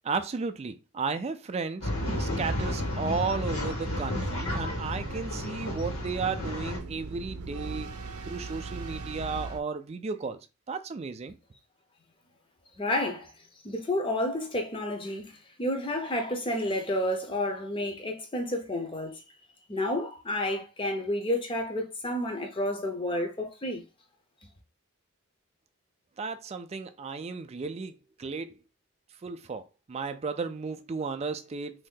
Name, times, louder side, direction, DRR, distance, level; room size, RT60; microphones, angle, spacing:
voice 1, 0.0-1.9 2.2-7.9 8.2-10.4 10.7-11.4 26.2-28.6 29.2-31.9, right 4 dB, 30° right, 0.3 m, -34 dB
Male speech man speaking / Chatter / Rattle, 1.8-6.8, left 1 dB, 70° left, 1.5 m, -32 dB
sound 1, 1.9-9.6, right 3 dB, 90° right, 0.6 m, -40 dB
voice 2, 12.8-13.3 13.6-15.3 15.6-19.2 19.7-23.8, left 1 dB, 20° left, 0.6 m, -30 dB
3.1 x 2.7 x 3.6 m
head